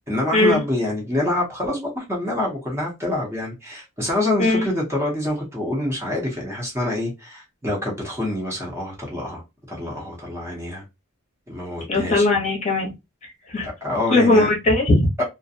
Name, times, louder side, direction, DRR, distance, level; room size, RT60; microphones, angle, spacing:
voice 1, 0.1-9.4 9.7-10.8 11.5-12.3 13.6-14.5 15.2-15.3, left 1 dB, 10° right, 0.7 m, -26 dB
voice 2, 11.9-12.9 13.2-13.7 14.1-15.1, left 2 dB, 30° left, 0.8 m, -19 dB
2.4 x 2.1 x 2.6 m
head